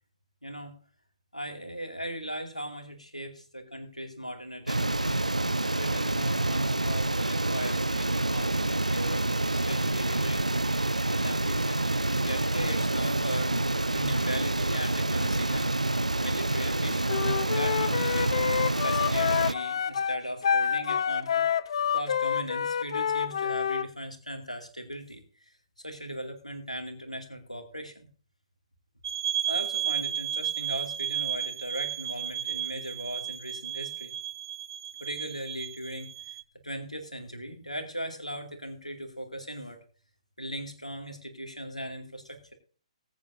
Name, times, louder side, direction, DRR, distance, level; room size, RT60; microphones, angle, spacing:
voice 1, 0.4-0.8 1.3-5.2 5.8-10.5 11.1-17.2 17.5-18.4 18.8-21.4 21.9-28.1 29.5-34.1 35.0-36.4 36.6-39.8 40.4-42.5, equal, 90° left, 4 dB, 2.3 m, -38 dB
sound 1, 4.7-19.5, right 2 dB, 85° right, 0.4 m, -27 dB
Wind instrument woodwind instrument, 17.1-23.9, left 8 dB, 50° left, 0.6 m, -28 dB
sound 2, 29.0-36.4, right 10 dB, 45° right, 0.6 m, -33 dB
20.5 x 8.8 x 2.7 m, 0.40 s
figure-of-eight pair, 130°, 4 cm